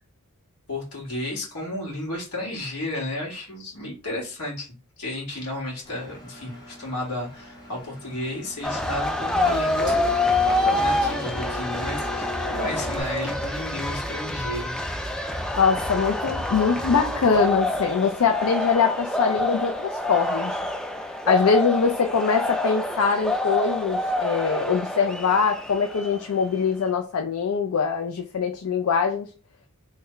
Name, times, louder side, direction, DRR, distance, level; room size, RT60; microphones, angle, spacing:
voice 1, 0.7-10.1 10.5-14.7, left 1 dB, 90° left, -4 dB, 1.8 m, -32 dB
Engine, 5.8-13.0, left 1 dB, 20° left, 0.8 m, -38 dB
sound 1, 8.6-26.4, left 2 dB, 5° left, 0.3 m, -27 dB
voice 2, 15.6-20.5 21.3-29.3, left 5 dB, 75° left, 4 dB, 0.4 m, -23 dB
3.2 x 2.2 x 3.8 m, 0.35 s
head